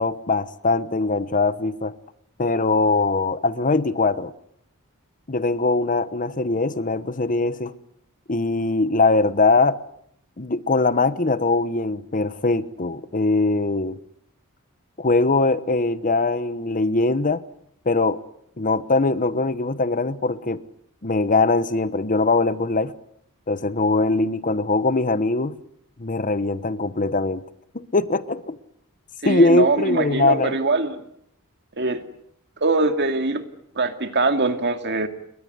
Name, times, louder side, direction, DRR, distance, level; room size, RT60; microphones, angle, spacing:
voice 1, 0.0-1.9 2.4-4.3 5.3-7.7 8.3-9.8 10.4-14.0 15.0-17.4 17.8-18.2 18.6-20.6 21.0-22.9 23.5-25.6 26.0-27.4 27.7-28.6 29.2-30.6, left 3 dB, 35° left, 14 dB, 1.1 m, -21 dB
voice 2, 29.2-31.0 31.8-32.0 32.6-33.4 33.8-35.1, right 3 dB, 50° right, 7 dB, 2.5 m, -22 dB
30.0 x 22.5 x 8.2 m, 0.72 s
head